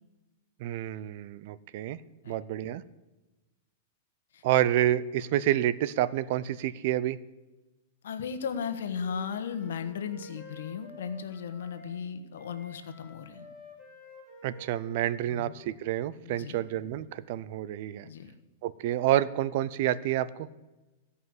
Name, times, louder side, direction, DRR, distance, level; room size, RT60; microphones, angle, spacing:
voice 1, 0.6-2.0 2.3-2.8 4.4-7.2 14.4-18.1 18.6-20.5, right 12 dB, 50° right, 17 dB, 0.5 m, -28 dB
voice 2, 8.0-13.5 15.3-15.6 16.2-16.6 18.0-18.3, left 7 dB, 85° left, 9 dB, 1.2 m, -36 dB
Wind instrument woodwind instrument, 8.9-12.0 12.3-16.1, left 1 dB, 10° left, 2.7 m, -51 dB
15.5 x 5.5 x 7.8 m, 1.1 s
supercardioid pair, 155°, 0 cm